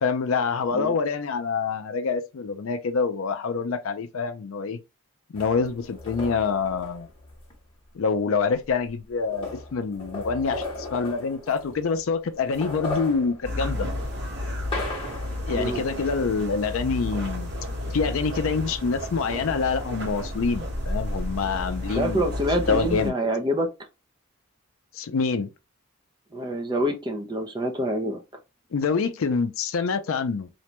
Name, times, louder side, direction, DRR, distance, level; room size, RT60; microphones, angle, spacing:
voice 1, 0.0-4.8 5.3-7.1 7.9-10.6 10.9-13.9 15.5-17.5 17.9-22.2 22.7-23.1 24.9-25.5 28.7-30.5, left 5 dB, 75° left, 0.4 m, -26 dB
sound 1, 5.3-7.5 8.5-8.6 8.9-12.0 12.4-15.5, left 2 dB, 25° left, 0.9 m, -36 dB
sound 2, 13.4-23.1, left 1 dB, 55° right, 1.2 m, -32 dB
voice 2, 22.0-23.7 26.3-28.2, equal, 20° right, 0.4 m, -26 dB
2.5 x 2.2 x 2.9 m
head